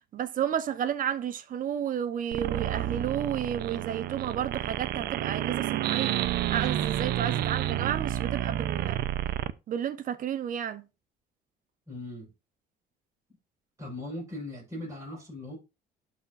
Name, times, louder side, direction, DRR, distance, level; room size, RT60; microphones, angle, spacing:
voice 1, 0.1-6.2 6.5-9.0 9.7-10.8, right 9 dB, 55° right, 1.0 m, -32 dB
sound 1, 2.3-9.5, right 12 dB, 70° right, 0.6 m, -30 dB
voice 2, 11.9-12.3 13.8-15.6, left 1 dB, 20° right, 4.9 m, -39 dB
12.0 x 4.4 x 2.5 m
cardioid pair, 110°, 17 cm